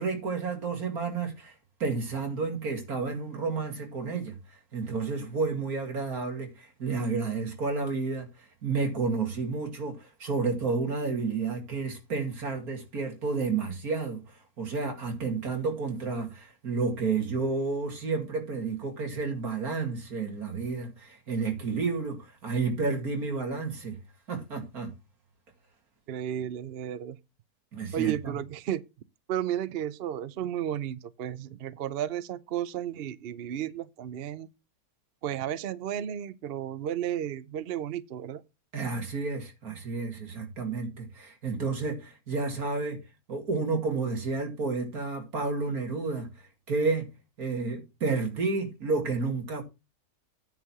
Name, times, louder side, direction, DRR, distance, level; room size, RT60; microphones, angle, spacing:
voice 1, 0.0-1.5 1.8-4.3 4.7-8.3 8.6-14.2 14.6-24.0 24.3-24.9 27.7-28.3 38.7-43.0 43.3-46.3 46.7-47.1 47.4-49.6, right 4 dB, 75° right, 2.8 m, -31 dB
voice 2, 26.1-27.2 27.9-28.8 29.3-34.5 35.2-38.4, right 10 dB, 55° right, 0.6 m, -33 dB
9.4 x 4.6 x 7.0 m
omnidirectional pair, 1.6 m